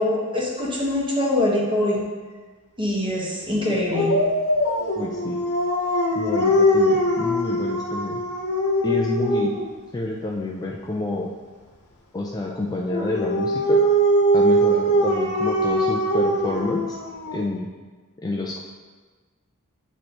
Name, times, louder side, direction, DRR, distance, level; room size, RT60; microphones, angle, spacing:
voice 1, 0.0-2.0 2.8-4.1, left 1 dB, 20° right, -3 dB, 1.3 m, -23 dB
Dog, 3.9-9.7 12.9-17.5, equal, 85° left, 0.9 m, -21 dB
voice 2, 5.0-5.4 6.1-8.2 8.8-9.5 9.9-11.3 12.1-13.8 14.3-17.0 17.3-17.7 18.2-18.6, left 2 dB, 15° left, -1 dB, 0.4 m, -28 dB
8.9 x 3.2 x 4.3 m, 1.4 s
head